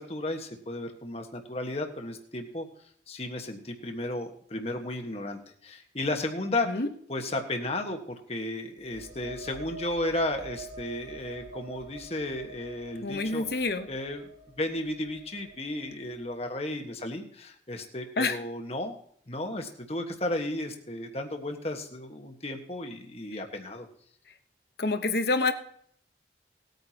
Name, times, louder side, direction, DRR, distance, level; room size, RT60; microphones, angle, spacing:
voice 1, 0.0-2.7 3.1-6.8 7.1-14.3 14.6-18.9 19.3-23.9, left 1 dB, 35° left, 4 dB, 1.5 m, -34 dB
sound 1, 8.8-16.4, right 3 dB, 25° right, 2.4 m, -46 dB
voice 2, 13.0-13.9 18.2-18.4 24.8-25.5, left 3 dB, 60° left, 9 dB, 1.1 m, -27 dB
19.0 x 9.3 x 2.9 m, 0.62 s
head